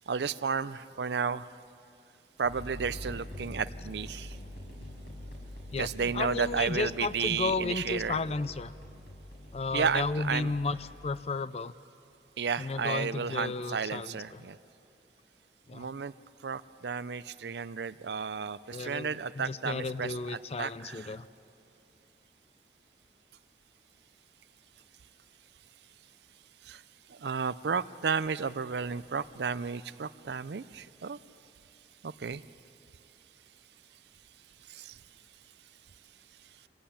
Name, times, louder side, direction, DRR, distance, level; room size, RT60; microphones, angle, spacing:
voice 1, 0.0-1.5 2.4-4.4 5.8-8.2 9.7-10.5 12.4-14.6 15.7-16.1 16.4-21.2 26.6-26.8 27.1-31.2 32.0-32.4 34.7-35.0, right 6 dB, 70° right, 16 dB, 0.5 m, -33 dB
sound 1, 2.4-11.2, left 1 dB, 70° left, 5.9 m, -45 dB
voice 2, 6.1-8.7 9.5-10.8 11.0-11.7 12.6-14.4 15.7-15.9 18.7-19.1 19.4-21.2, left 3 dB, 35° left, 15 dB, 0.5 m, -33 dB
25.5 x 17.0 x 8.7 m, 2.7 s
head